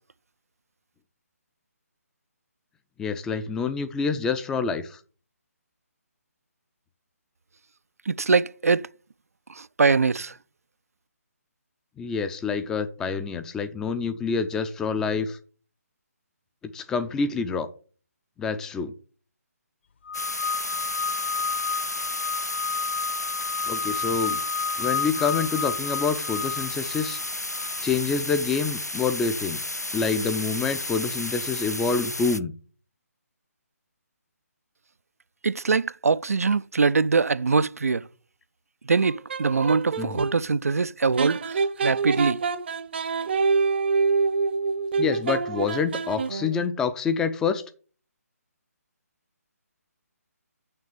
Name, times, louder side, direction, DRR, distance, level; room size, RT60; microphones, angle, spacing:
voice 1, 3.0-5.0 12.0-15.4 16.7-17.7 18.4-18.9 23.7-24.4 24.8-27.2 27.8-29.6 29.9-32.5 40.0-40.2 45.0-47.6, left 5 dB, 5° left, 0.4 m, -27 dB
voice 2, 8.1-8.9 9.5-10.4 35.4-38.1 38.8-42.4, right 4 dB, 65° right, 0.4 m, -23 dB
sound 1, 20.1-32.4, left 2 dB, 90° left, 0.6 m, -32 dB
sound 2, 20.1-27.8, left 5 dB, 45° left, 0.8 m, -31 dB
sound 3, 38.9-40.4 41.2-46.6, right 4 dB, 40° right, 0.7 m, -26 dB
6.6 x 6.6 x 6.8 m
figure-of-eight pair, 145°, 9 cm